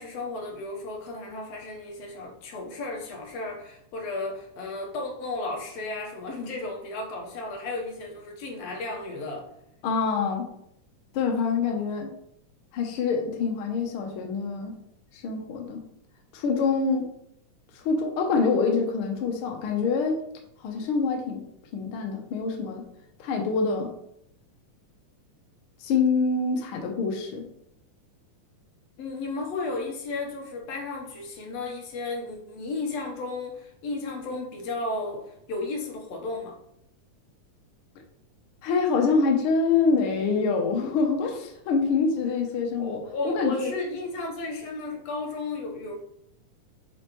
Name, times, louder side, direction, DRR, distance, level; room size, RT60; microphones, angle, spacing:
voice 1, 0.0-9.5 29.0-36.6 42.8-45.9, left 2 dB, 65° left, 0 dB, 2.0 m, -34 dB
voice 2, 9.8-10.5 11.1-12.1 12.7-14.8 15.2-15.8 16.3-17.1 17.7-20.2 20.6-21.4 21.7-22.8 23.2-23.9 25.8-27.4 38.6-43.7, left 4 dB, 80° left, 2 dB, 1.2 m, -25 dB
7.7 x 4.1 x 3.0 m, 0.74 s
omnidirectional pair, 3.6 m